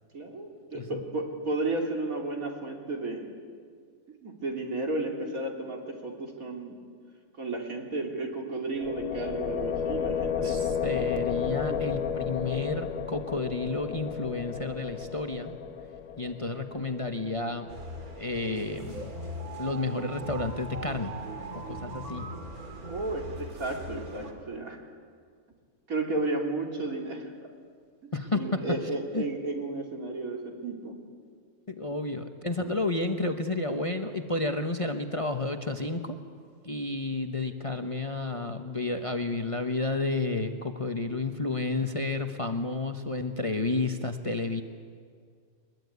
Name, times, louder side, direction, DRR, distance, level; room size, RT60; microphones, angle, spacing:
voice 1, 0.1-3.3 4.2-6.9 7.4-10.6 11.7-11.8 22.9-24.8 25.9-27.2 28.0-31.0 31.9-32.0, right 2 dB, 70° right, 1 dB, 3.6 m, -33 dB
sound 1, 8.7-18.6, left 7 dB, 75° left, 1.5 m, -33 dB
voice 2, 10.4-15.5 16.2-17.7 18.2-19.1 19.6-21.1 21.5-22.3 28.1-28.8 29.1-29.3 31.7-36.2 36.6-44.6, left 3 dB, 25° left, 6 dB, 1.0 m, -31 dB
sound 2, 17.7-24.3, right 1 dB, 90° right, 2.9 m, -40 dB
22.5 x 21.5 x 9.5 m, 2.1 s
omnidirectional pair, 1.5 m